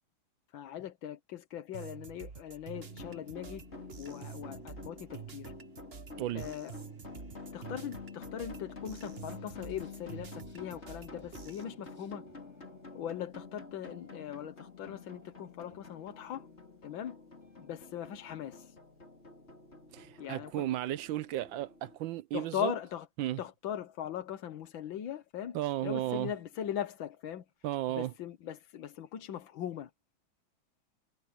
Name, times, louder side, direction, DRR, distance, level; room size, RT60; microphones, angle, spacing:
voice 1, 0.5-3.6 4.0-5.5 6.3-6.7 7.5-12.2 12.9-16.5 16.8-17.2 17.6-18.8 20.2-20.7 22.3-23.1 23.4-25.6 25.8-27.4 27.9-29.9, left 10 dB, 70° left, 1.8 m, -40 dB
sound 1, 1.7-11.6, right 7 dB, 35° right, 1.1 m, -49 dB
sound 2, 2.7-22.0, left 4 dB, 30° left, 3.6 m, -49 dB
voice 2, 6.2-6.5 19.9-22.7 23.2-23.4 25.5-26.3 27.6-28.1, right 14 dB, 75° right, 1.3 m, -34 dB
sound 3, 8.9-18.7, equal, 10° left, 5.8 m, -67 dB
omnidirectional pair, 2.2 m